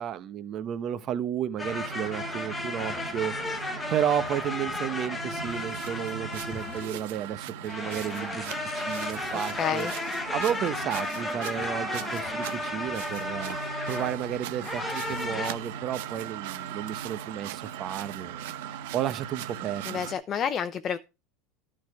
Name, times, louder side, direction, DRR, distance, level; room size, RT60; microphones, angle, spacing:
voice 1, 0.0-9.9 10.3-13.6 13.9-20.0, right 9 dB, 40° right, 1.0 m, -32 dB
sound 1, 1.6-7.1 7.6-14.2 14.6-15.5, left 2 dB, 10° left, 1.2 m, -34 dB
sound 2, 1.7-20.1, right 9 dB, 75° right, 1.0 m, -39 dB
voice 2, 9.6-9.9 19.9-21.0, left 8 dB, 30° left, 0.7 m, -29 dB
12.0 x 4.9 x 5.9 m
supercardioid pair, 140°, 0 cm